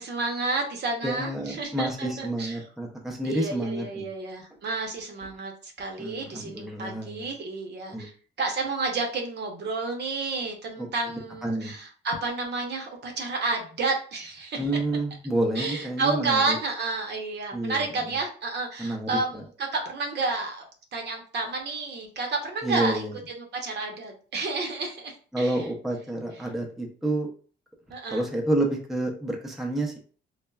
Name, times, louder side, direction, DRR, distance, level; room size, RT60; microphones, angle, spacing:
voice 1, 0.0-2.6 3.2-8.1 8.4-14.7 15.5-20.6 20.9-25.7 27.9-28.2, right 3 dB, 60° right, 2 dB, 0.7 m, -30 dB
voice 2, 1.0-4.0 6.0-7.3 7.9-8.1 10.8-10.9 11.4-11.7 14.6-16.6 17.5-17.9 18.8-19.4 22.6-23.1 25.3-27.3 28.1-30.0, right 1 dB, ahead, 0 dB, 0.5 m, -29 dB
3.2 x 2.1 x 2.2 m, 0.41 s
cardioid pair, 90°, 20 cm